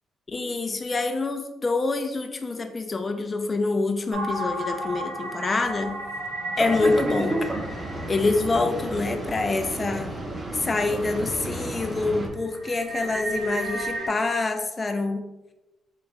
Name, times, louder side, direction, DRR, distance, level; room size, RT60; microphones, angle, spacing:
voice 1, 0.3-6.0 6.6-7.4 8.1-10.1 10.5-15.2, left 3 dB, 30° left, 5 dB, 0.4 m, -26 dB
sound 1, 4.1-9.9 10.4-10.5 11.0-11.3 11.7-14.1, right 1 dB, 70° right, 1.1 m, -34 dB
Boat Water vehicle, 6.6-12.3, right 1 dB, 25° right, 0.8 m, -31 dB
3.3 x 2.9 x 3.8 m, 1.0 s
cardioid pair, 90°, 0 cm